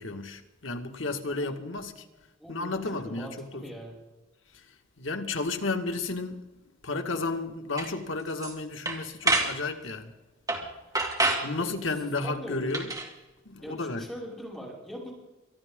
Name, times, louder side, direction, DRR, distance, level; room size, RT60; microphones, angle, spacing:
voice 1, 0.0-2.0 2.5-3.6 5.0-6.4 6.8-10.1 11.4-12.9 13.4-14.1, left 3 dB, 70° left, 1.7 m, -32 dB
voice 2, 1.4-2.1 2.4-3.9 11.6-11.9 12.2-12.8 13.6-15.1, equal, ahead, 5.7 m, -42 dB
sound 1, 7.8-7.9 8.3-8.5 8.9-9.5 10.5-10.7 10.9-11.5 12.7-13.1, right 2 dB, 20° right, 2.2 m, -27 dB
24.0 x 12.5 x 3.7 m
head